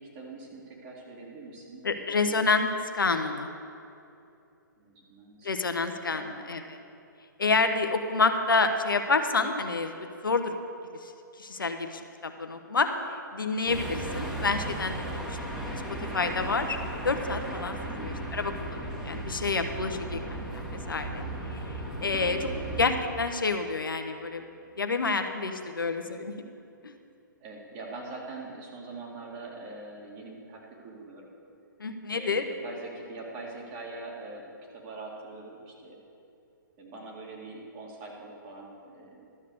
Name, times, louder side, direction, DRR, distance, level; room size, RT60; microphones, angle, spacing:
voice 1, 0.0-2.5 4.8-5.5 6.1-6.5 7.6-7.7 13.9-14.3 17.9-18.2 20.1-20.5 22.5-22.8 27.4-31.3 32.1-36.0 36.8-39.3, right 2 dB, 35° right, -1 dB, 2.3 m, -43 dB
voice 2, 1.8-2.7 2.9-3.5 5.4-6.6 7.4-10.5 11.4-12.9 13.3-15.4 15.6-15.8 16.1-16.8 17.0-20.2 20.9-21.2 22.0-22.5 22.8-24.4 24.8-26.4 26.8-26.9 31.8-32.4, left 4 dB, 80° left, 7 dB, 0.9 m, -28 dB
sound 1, 13.7-22.9, right 1 dB, 5° right, 1.6 m, -35 dB
12.5 x 6.7 x 6.5 m, 2.6 s
figure-of-eight pair, 130°, 11 cm